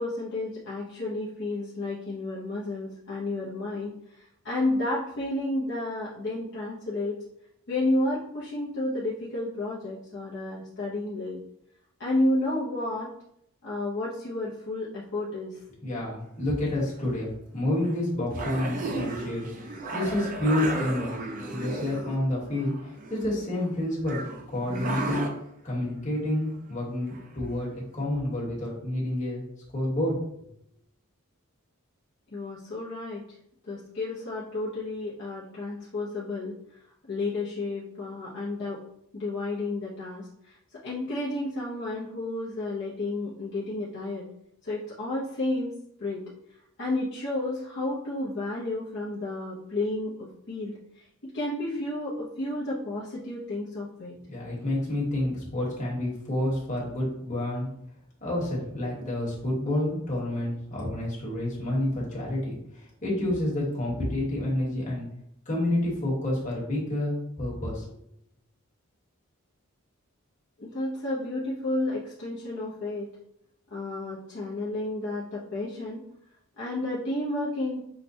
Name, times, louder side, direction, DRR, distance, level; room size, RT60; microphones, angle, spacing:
voice 1, 0.0-7.2 7.7-11.4 12.0-13.1 13.6-15.6 32.3-33.2 33.6-36.6 37.1-38.8 39.1-44.3 44.6-46.3 46.8-54.2 70.6-73.1 73.7-76.0 76.6-77.8, left 2 dB, 50° left, -7 dB, 0.6 m, -31 dB
voice 2, 15.8-21.1 21.5-24.2 24.5-25.2 25.6-29.4 29.7-30.2 54.3-57.7 58.2-65.1 65.5-68.0, left 1 dB, 35° left, -5 dB, 1.2 m, -29 dB
sound 1, 16.6-17.0 17.8-17.9 18.3-22.1 22.5-23.7 24.1-25.3 27.1-27.2 27.6-27.7, right 2 dB, 40° right, 0.4 m, -34 dB
5.7 x 2.1 x 2.7 m, 0.74 s
head